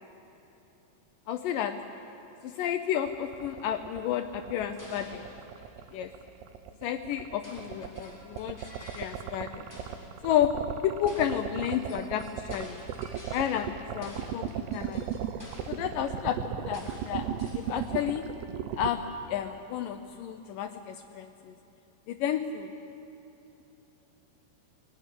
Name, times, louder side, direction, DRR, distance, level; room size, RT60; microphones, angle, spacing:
voice 1, 1.3-1.8 2.4-5.3 5.9-6.1 6.8-8.6 8.9-9.7 10.2-10.5 10.8-12.8 13.3-15.1 15.7-18.2 18.8-19.0 19.3-21.6 22.1-22.7, left 10 dB, 85° left, 6 dB, 1.9 m, -31 dB
sound 1, 3.1-18.9, right 10 dB, 85° right, 3.1 m, -36 dB
sound 2, 4.8-6.2 7.4-9.4 9.7-10.2 11.1-13.8 14.0-16.0 16.7-18.1, left 1 dB, 5° left, 4.1 m, -50 dB
24.0 x 18.0 x 10.0 m, 3.0 s
omnidirectional pair, 4.8 m